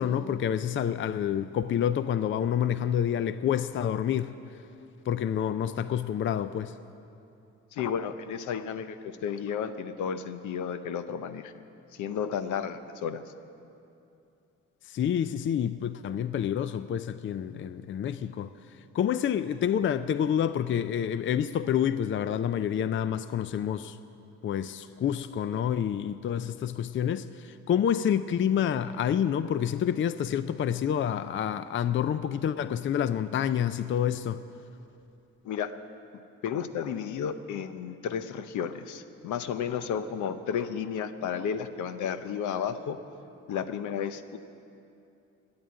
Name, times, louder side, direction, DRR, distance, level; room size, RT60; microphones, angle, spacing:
voice 1, 0.0-4.3 5.1-6.7 14.9-18.5 18.9-24.0 24.4-34.4, left 9 dB, 40° left, 0.4 m, -28 dB
voice 2, 7.7-11.5 11.9-13.2 35.4-35.7 36.4-43.0 43.5-44.4, left 7 dB, 75° left, 0.8 m, -32 dB
12.5 x 8.9 x 9.5 m
cardioid pair, 90°, 30 cm